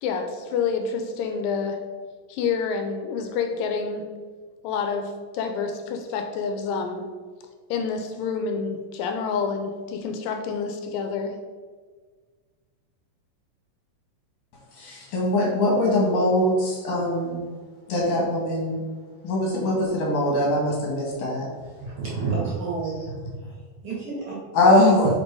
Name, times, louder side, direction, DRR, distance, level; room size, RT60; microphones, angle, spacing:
voice 1, 0.0-1.8 2.3-4.0 4.6-7.1 7.7-11.3, left 5 dB, 80° left, 5 dB, 2.3 m, -28 dB
voice 2, 14.8-17.4 17.9-18.8 19.2-21.4 24.5-25.1, left 1 dB, 65° left, -3 dB, 2.8 m, -22 dB
voice 3, 21.8-23.1 23.8-24.4 24.7-24.9, right 4 dB, 45° right, -6 dB, 2.1 m, -29 dB
5.4 x 5.3 x 4.6 m, 1.5 s
omnidirectional pair, 4.0 m